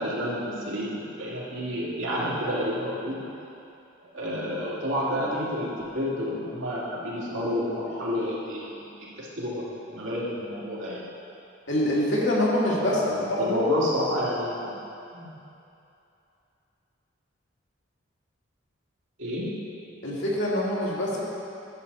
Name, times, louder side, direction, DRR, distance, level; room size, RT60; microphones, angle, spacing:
voice 1, 0.0-3.2 4.1-8.8 9.2-11.0 12.8-14.7 15.1-15.3 19.2-19.5, equal, 90° right, -7 dB, 2.6 m, -30 dB
voice 2, 11.7-13.0 13.4-13.7 20.0-21.2, left 1 dB, 70° left, -6 dB, 2.1 m, -25 dB
11.5 x 7.9 x 4.1 m, 2.7 s
head